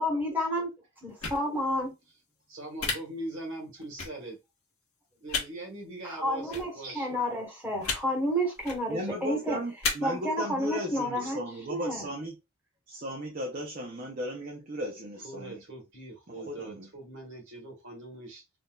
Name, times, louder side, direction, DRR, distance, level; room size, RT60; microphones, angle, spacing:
voice 1, 0.0-0.7 1.0-1.9 6.0-9.6 10.0-11.4 11.7-12.1, equal, 10° right, 1.3 m, -30 dB
sound 1, 1.2-1.4 2.8-2.9 4.0-4.1 5.3-5.4 6.5-6.6 7.8-8.0 8.6-8.8 9.8-9.9, left 5 dB, 75° left, 1.3 m, -30 dB
voice 2, 2.5-4.4 5.2-7.1 15.2-18.4, right 2 dB, 60° right, 1.4 m, -41 dB
voice 3, 8.9-12.3 12.9-15.6 16.3-16.9, equal, 40° right, 0.6 m, -36 dB
3.6 x 2.7 x 2.3 m
head